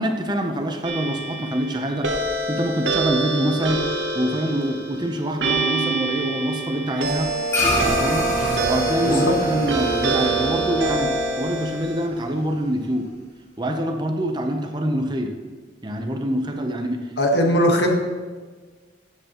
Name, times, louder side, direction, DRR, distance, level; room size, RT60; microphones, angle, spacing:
voice 1, 0.0-3.8 4.1-7.3 7.8-8.3 8.6-13.1 13.6-15.4 15.8-17.1, equal, 25° right, 5 dB, 0.7 m, -25 dB
sound 1, 0.8-12.1, right 3 dB, 85° right, 1.1 m, -27 dB
Brass instrument, 7.2-11.3, right 4 dB, 5° right, 2.2 m, -27 dB
sound 2, 7.5-12.1, left 1 dB, 15° left, 3.1 m, -27 dB
voice 2, 17.2-17.9, equal, 65° left, 2 dB, 1.4 m, -19 dB
13.0 x 7.9 x 3.0 m, 1.4 s
head